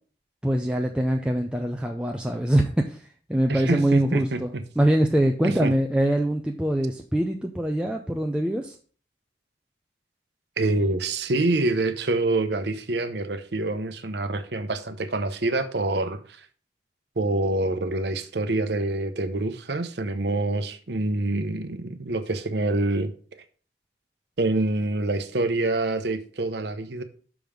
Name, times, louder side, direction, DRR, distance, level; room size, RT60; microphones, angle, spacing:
voice 1, 0.4-4.5 4.8-8.8, right 1 dB, 5° right, 0.4 m, -24 dB
voice 2, 3.5-4.4 5.4-5.7 10.6-16.4 17.2-23.1 24.4-27.0, right 2 dB, 65° right, 0.8 m, -26 dB
6.1 x 5.3 x 5.0 m
head